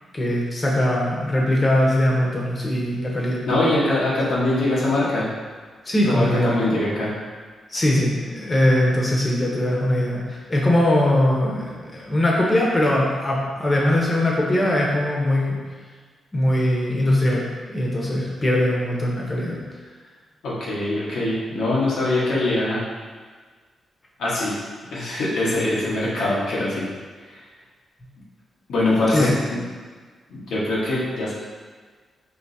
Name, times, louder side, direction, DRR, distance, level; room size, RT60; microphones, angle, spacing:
voice 1, 0.1-3.4 5.8-6.5 7.7-15.6 16.3-19.6 29.1-29.3, left 1 dB, 30° left, -3 dB, 1.0 m, -21 dB
voice 2, 3.5-5.3 6.0-7.1 20.4-22.8 24.2-24.5 24.9-26.8 28.7-29.6 30.3-31.3, left 2 dB, 80° left, -7 dB, 1.3 m, -22 dB
4.6 x 3.0 x 2.8 m, 1.5 s
cardioid pair, 75°, 0 cm